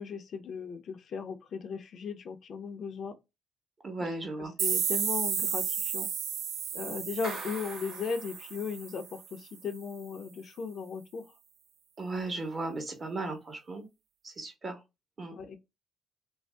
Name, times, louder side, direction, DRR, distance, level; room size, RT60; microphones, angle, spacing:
voice 1, 0.0-3.1 4.0-4.1 4.4-6.1 6.7-11.2 15.3-15.6, left 5 dB, 60° left, 0.5 m, -37 dB
voice 2, 3.8-4.5 12.0-13.8 14.2-14.8 15.2-15.3, right 2 dB, 40° right, 1.1 m, -36 dB
sound 1, 4.6-9.3, right 8 dB, 75° right, 0.4 m, -33 dB
Clapping, 7.2-8.9, right 2 dB, 90° right, 1.3 m, -44 dB
2.6 x 2.0 x 3.3 m
cardioid pair, 90°, 0 cm